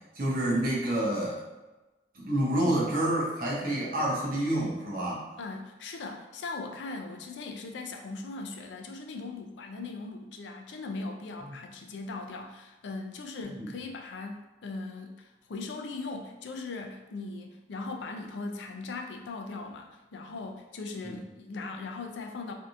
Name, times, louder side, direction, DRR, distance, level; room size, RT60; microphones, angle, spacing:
voice 1, 0.1-1.4 2.1-5.2 11.5-11.6 13.6-13.7 21.1-21.2, right 1 dB, 50° right, -5 dB, 0.9 m, -28 dB
voice 2, 5.4-22.5, left 3 dB, 80° left, 3 dB, 0.4 m, -39 dB
3.3 x 2.7 x 2.4 m, 1.1 s
head